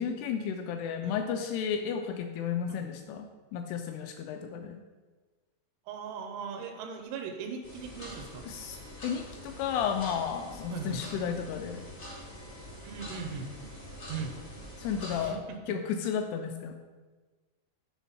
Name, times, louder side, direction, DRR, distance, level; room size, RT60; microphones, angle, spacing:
voice 1, 0.0-4.8 8.4-11.9 14.8-15.4 15.7-16.7, left 7 dB, 85° left, 5 dB, 2.4 m, -33 dB
voice 2, 5.9-8.4 10.7-11.0 12.8-13.5 14.1-14.4 15.1-15.6, right 6 dB, 80° right, 3 dB, 2.7 m, -39 dB
sound 1, 7.6-15.3, equal, 65° left, 0.7 m, -45 dB
7.2 x 3.8 x 5.7 m, 1.3 s
omnidirectional pair, 5.0 m